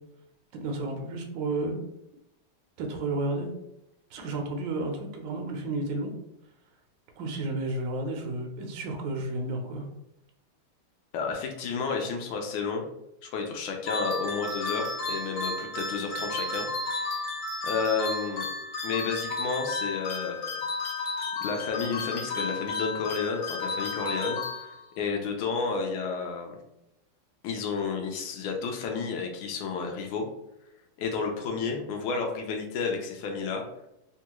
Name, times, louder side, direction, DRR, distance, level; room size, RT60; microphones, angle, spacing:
voice 1, 0.5-1.8 2.8-3.5 4.1-6.1 7.2-9.9, right 2 dB, 75° right, 2 dB, 1.1 m, -32 dB
voice 2, 11.1-12.8 13.2-17.3 17.6-18.5 18.8-20.6 21.0-21.1 21.4-26.6 27.4-30.3 31.0-33.6, left 5 dB, 75° left, 3 dB, 1.3 m, -31 dB
sound 1, 13.9-25.1, left 3 dB, 60° left, 1.1 m, -33 dB
3.5 x 2.3 x 2.9 m, 0.85 s
omnidirectional pair, 2.4 m